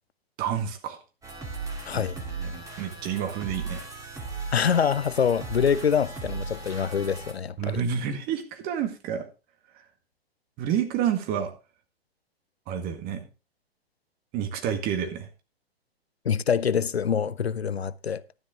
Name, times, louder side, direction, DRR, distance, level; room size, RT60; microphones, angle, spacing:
voice 1, 0.4-1.0 1.9-3.9 7.6-9.3 9.7-9.9 10.6-11.5 12.7-13.3 14.3-15.3, right 8 dB, 30° right, 1.9 m, -29 dB
sound 1, 1.2-7.3, right 4 dB, 10° right, 2.5 m, -37 dB
voice 2, 1.9-2.2 4.5-7.8 16.2-18.2, left 7 dB, 85° left, 0.6 m, -25 dB
12.0 x 9.8 x 3.7 m
figure-of-eight pair, 115°, 31 cm